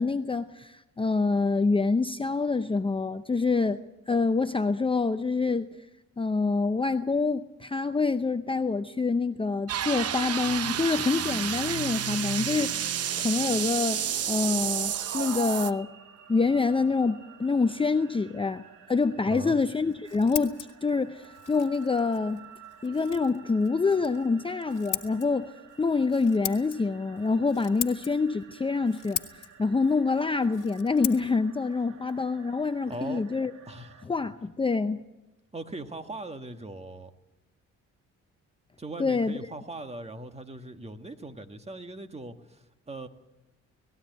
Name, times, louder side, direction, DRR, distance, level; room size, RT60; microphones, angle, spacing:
voice 1, 0.0-3.8 4.1-5.7 6.2-12.9 13.2-15.9 16.3-22.5 22.8-25.5 25.8-29.2 29.6-33.5 34.0-35.0 39.0-39.4, left 4 dB, 15° left, 0.7 m, -26 dB
sound 1, 9.7-15.7, right 9 dB, 55° right, 0.9 m, -30 dB
sound 2, 14.4-34.1, right 8 dB, 75° right, 2.5 m, -53 dB
voice 2, 19.3-19.6 32.9-33.2 33.7-34.1 35.5-37.1 38.8-43.1, right 2 dB, 20° right, 1.7 m, -40 dB
Scissors, 19.7-33.3, left 13 dB, 85° left, 1.7 m, -41 dB
19.0 x 16.5 x 9.3 m
cardioid pair, 90°, 30 cm